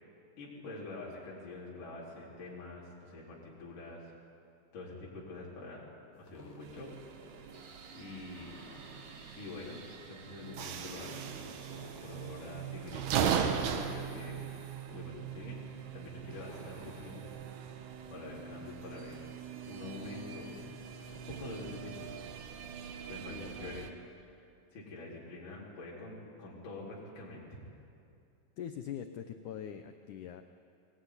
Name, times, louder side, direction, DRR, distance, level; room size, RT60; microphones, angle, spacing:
voice 1, 0.4-4.1 4.7-5.8 6.2-6.9 7.9-8.5 9.4-9.8 10.1-11.2 12.0-14.4 14.9-15.6 15.9-17.2 18.1-19.3 19.7-20.6 21.3-22.1 23.1-23.9 24.2-24.4 24.7-27.6, left 2 dB, 50° left, -5 dB, 5.5 m, -46 dB
sound 1, 6.2-17.4, equal, 20° left, 3.5 m, -54 dB
sound 2, 6.6-23.9, right 8 dB, 75° right, 3.3 m, -39 dB
sound 3, 7.5-13.2, right 4 dB, 50° right, 2.6 m, -57 dB
voice 2, 23.3-23.8 28.6-30.4, left 9 dB, 80° left, 8 dB, 1.8 m, -43 dB
21.5 x 21.0 x 9.8 m, 2.5 s
omnidirectional pair, 4.7 m